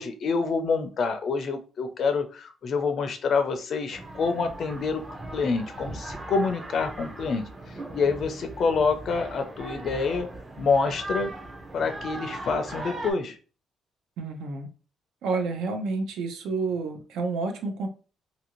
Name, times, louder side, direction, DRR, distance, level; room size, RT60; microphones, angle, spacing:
voice 1, 0.0-5.0 5.3-10.3 10.6-11.3 11.7-13.4, left 4 dB, 45° left, 7 dB, 0.4 m, -27 dB
sound 1, 3.9-13.1, right 2 dB, 20° right, 0.5 m, -39 dB
voice 2, 14.2-14.7 15.2-17.9, right 4 dB, 80° right, 5 dB, 0.6 m, -29 dB
2.7 x 2.5 x 2.9 m, 0.36 s
cardioid pair, 175°, 0 cm